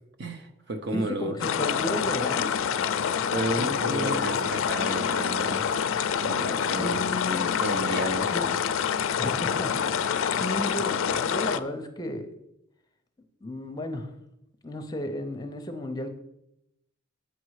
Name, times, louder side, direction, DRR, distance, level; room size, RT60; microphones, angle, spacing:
voice 1, 0.2-1.4 3.3-5.6 6.2-7.2 7.6-8.3, right 2 dB, 55° right, 6 dB, 0.8 m, -32 dB
voice 2, 0.9-2.5 3.5-4.7 6.7-7.5 8.3-8.5 9.2-12.3 13.4-14.1 14.6-16.2, left 1 dB, 20° left, 6 dB, 0.6 m, -34 dB
sound 1, 1.4-11.6, left 7 dB, 75° left, 0.4 m, -27 dB
8.2 x 5.3 x 4.8 m, 0.83 s
head